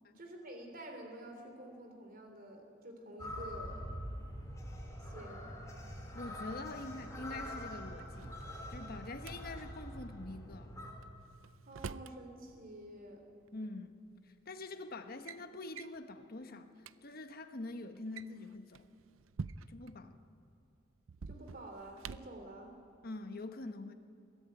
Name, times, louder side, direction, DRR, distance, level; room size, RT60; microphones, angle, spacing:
voice 1, 0.1-3.8 5.0-5.5 11.7-13.2 21.3-22.8, right 1 dB, 45° right, 4 dB, 3.2 m, -49 dB
sound 1, 3.2-10.9, left 1 dB, 15° left, 3.4 m, -45 dB
voice 2, 6.1-8.4 8.7-10.8 13.5-14.0 14.5-16.7 17.0-18.8 19.7-20.1 23.0-23.9, left 2 dB, 50° left, 7 dB, 1.2 m, -45 dB
Drawer open or close, 8.0-9.4 11.0-12.2 13.5-13.6 14.4-14.7 15.0-15.4 15.8-16.0 16.5-16.6 16.8-17.0 18.0-19.9 21.1-22.4, right 5 dB, 80° right, 0.5 m, -47 dB
22.0 x 14.0 x 9.2 m, 2.7 s
head